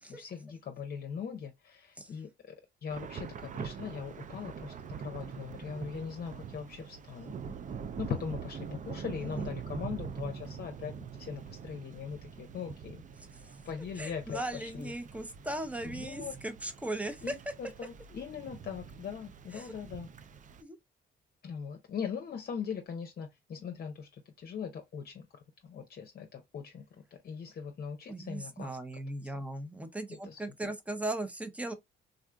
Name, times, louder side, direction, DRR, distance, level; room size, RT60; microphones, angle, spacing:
voice 1, 0.1-7.3 8.0-10.9 11.2-13.0 13.7-14.9 15.8-16.3 17.2-20.1 21.4-25.2 25.6-26.8 27.1-28.8 29.2-29.3 30.1-30.4, left 6 dB, 50° left, 0.7 m, -40 dB
Thunder / Rain, 2.9-20.6, right 6 dB, 40° right, 0.4 m, -44 dB
voice 2, 9.2-9.5 14.0-17.4 19.5-19.8 20.6-20.8 28.1-31.7, right 1 dB, 5° right, 0.7 m, -38 dB
3.7 x 2.4 x 2.2 m
cardioid pair, 90°, 20 cm